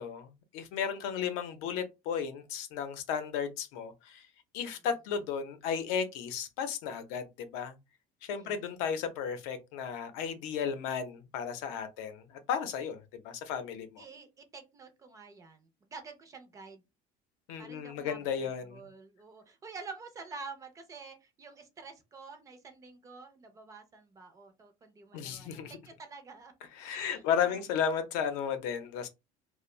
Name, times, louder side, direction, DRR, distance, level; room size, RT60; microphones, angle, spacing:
voice 1, 0.0-4.3 4.5-7.8 8.2-14.0 17.5-18.9 25.1-25.8 26.7-29.1, left 7 dB, 85° left, 0.6 m, -34 dB
voice 2, 8.4-8.7 14.0-16.8 17.6-26.5 26.9-27.6, right 4 dB, 20° right, 0.4 m, -48 dB
2.5 x 2.0 x 3.0 m
cardioid pair, 175°, 18 cm